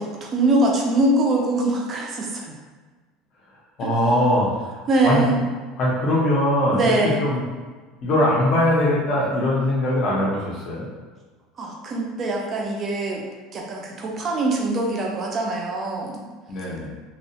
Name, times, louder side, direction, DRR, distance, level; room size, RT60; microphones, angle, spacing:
voice 1, 0.0-2.6 3.8-4.0 4.9-5.4 6.7-7.2 11.6-13.2 13.5-16.3, right 2 dB, 25° right, 0 dB, 0.3 m, -23 dB
voice 2, 3.8-4.5 5.0-5.2 5.8-6.9 7.2-7.4 8.0-10.9 16.5-16.9, left 1 dB, 35° left, -5 dB, 0.5 m, -21 dB
2.6 x 2.0 x 2.7 m, 1.4 s
cardioid pair, 175°, 0 cm